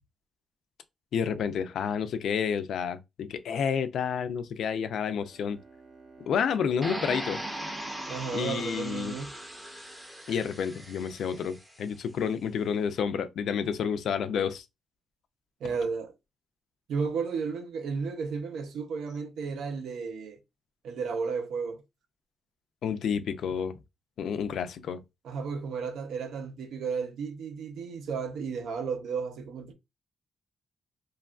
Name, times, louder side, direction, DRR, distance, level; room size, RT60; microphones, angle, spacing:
voice 1, 1.1-5.6 6.3-7.4 8.3-9.2 10.3-14.6 22.8-23.8 24.2-25.0, left 7 dB, 65° left, 0.3 m, -30 dB
Bowed string instrument, 5.2-10.7, right 3 dB, 35° right, 0.8 m, -52 dB
sound 1, 6.8-11.8, right 1 dB, 5° right, 0.5 m, -39 dB
voice 2, 8.1-9.4 15.6-16.1 16.9-20.4 20.8-21.8 25.2-29.7, right 5 dB, 85° right, 0.6 m, -33 dB
2.9 x 2.4 x 2.3 m
wide cardioid pair, 170°, 0 cm